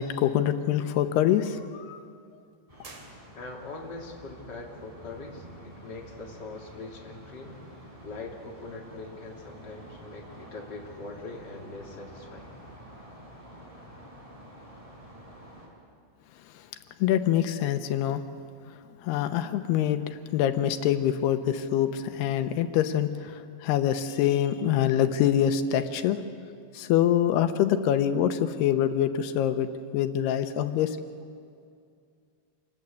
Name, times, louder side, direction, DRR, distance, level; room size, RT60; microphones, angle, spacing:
voice 1, 0.0-2.0 16.4-16.7 17.0-18.2 18.7-26.2 26.7-31.0, left 10 dB, 90° left, 8 dB, 3.0 m, -25 dB
sound 1, 2.7-15.7, right 1 dB, 10° right, 5.0 m, -48 dB
sound 2, 2.8-3.9, right 3 dB, 40° right, 3.6 m, -50 dB
voice 2, 3.3-7.6 8.0-12.6, left 3 dB, 30° left, -1 dB, 3.0 m, -42 dB
27.0 x 20.5 x 8.3 m, 2.3 s
omnidirectional pair, 4.6 m